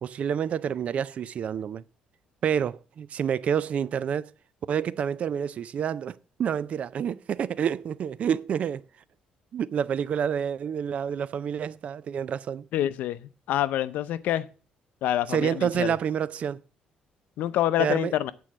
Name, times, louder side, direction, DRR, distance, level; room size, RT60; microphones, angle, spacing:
voice 1, 0.0-1.8 2.4-4.3 4.7-8.8 9.5-12.7 15.3-16.6 17.8-18.1, right 8 dB, 50° right, 0.4 m, -28 dB
voice 2, 12.7-14.5 15.0-15.9 17.4-18.3, left 12 dB, 80° left, 0.6 m, -27 dB
8.4 x 4.6 x 7.4 m
cardioid pair, 115°, 3 cm